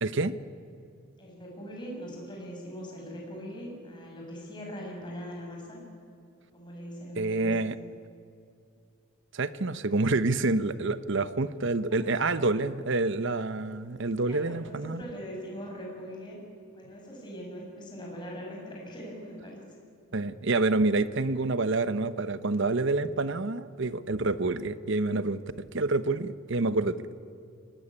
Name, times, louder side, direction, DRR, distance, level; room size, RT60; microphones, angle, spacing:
voice 1, 0.0-0.3 7.2-7.7 9.3-15.0 20.1-27.2, right 3 dB, 60° right, 14 dB, 0.9 m, -28 dB
voice 2, 1.2-5.8 6.5-7.6 11.9-12.1 14.2-16.4 16.7-19.6, equal, 20° left, -1 dB, 6.5 m, -41 dB
23.0 x 19.0 x 9.9 m, 2.3 s
head